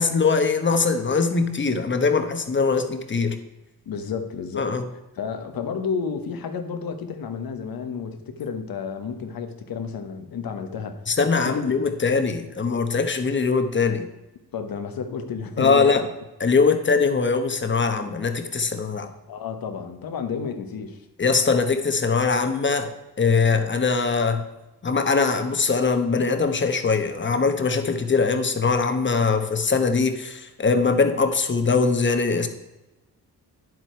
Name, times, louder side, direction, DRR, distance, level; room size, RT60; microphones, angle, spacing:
voice 1, 0.0-3.4 4.6-4.8 11.1-14.1 15.6-16.0 16.4-19.1 21.2-22.9 23.2-24.5 24.8-32.5, left 4 dB, 30° left, 7 dB, 1.1 m, -22 dB
voice 2, 3.8-4.7 5.1-11.0 11.4-11.7 14.5-16.0 19.3-21.0, left 6 dB, 70° left, 7 dB, 1.3 m, -31 dB
10.0 x 7.6 x 4.5 m, 1.0 s
cardioid pair, 120°, 37 cm